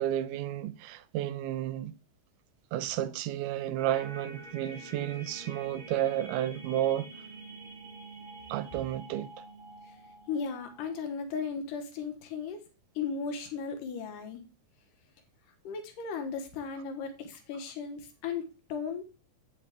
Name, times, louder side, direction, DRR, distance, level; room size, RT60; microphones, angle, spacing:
voice 1, 0.0-1.9 2.7-7.1 8.5-9.3, right 12 dB, 80° right, 2.0 m, -32 dB
sound 1, 3.8-11.1, right 2 dB, 20° right, 2.0 m, -47 dB
voice 2, 10.3-12.6 13.0-14.4 15.6-19.0, left 5 dB, 80° left, 2.7 m, -36 dB
8.6 x 5.9 x 3.5 m
omnidirectional pair, 3.8 m